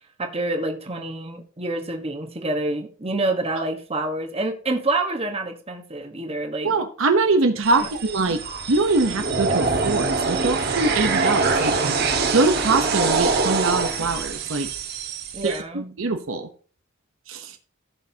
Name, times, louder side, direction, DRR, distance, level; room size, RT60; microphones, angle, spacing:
voice 1, 0.2-6.7 15.3-15.9, right 2 dB, 30° right, 3 dB, 1.3 m, -27 dB
voice 2, 6.6-11.7 12.3-14.7 15.4-16.5 17.3-17.6, right 3 dB, 70° right, 6 dB, 0.9 m, -23 dB
sound 1, 7.6-15.6, right 4 dB, 55° right, 1.5 m, -24 dB
15.5 x 6.4 x 2.8 m, 0.42 s
head